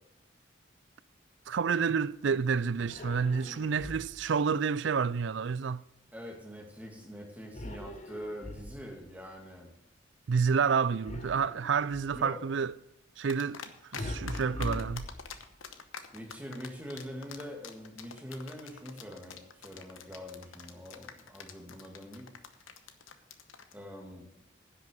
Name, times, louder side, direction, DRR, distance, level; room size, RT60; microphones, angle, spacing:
voice 1, 1.5-5.8 10.3-12.7 13.2-13.6 13.9-15.1, right 6 dB, 65° right, 0.4 m, -29 dB
sound 1, 2.9-4.4 7.5-9.1 11.0-12.3 14.0-15.7, left 1 dB, 35° left, 1.0 m, -41 dB
voice 2, 6.1-9.8 12.1-12.4 16.1-22.3 23.7-24.3, equal, 10° right, 2.3 m, -44 dB
sound 2, 13.3-14.0 14.3-23.7, left 7 dB, 80° left, 1.1 m, -45 dB
10.5 x 6.2 x 7.6 m
head